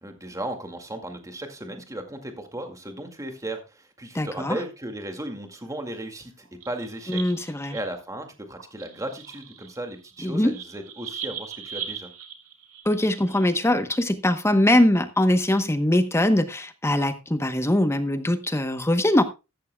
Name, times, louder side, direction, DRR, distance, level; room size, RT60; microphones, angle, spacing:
voice 1, 0.0-12.1, right 1 dB, 15° right, 2.1 m, -36 dB
voice 2, 4.1-4.6 7.1-7.8 10.2-10.6 12.8-19.2, left 1 dB, 10° left, 0.9 m, -22 dB
sound 1, 6.5-8.0 8.5-13.5, right 8 dB, 70° right, 2.8 m, -39 dB
14.0 x 13.5 x 2.3 m
head